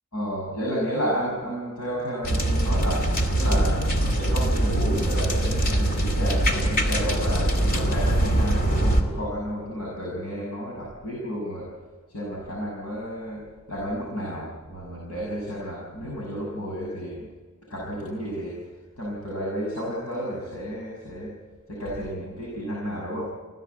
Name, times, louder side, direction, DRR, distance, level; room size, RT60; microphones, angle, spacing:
voice 1, 0.1-11.7 12.1-17.3 17.7-18.6 19.0-21.4 21.7-23.3, equal, 90° left, -3 dB, 6.4 m, -32 dB
sound 1, 2.2-9.0, right 1 dB, 40° left, 2.6 m, -23 dB
26.0 x 16.5 x 8.1 m, 1.4 s
head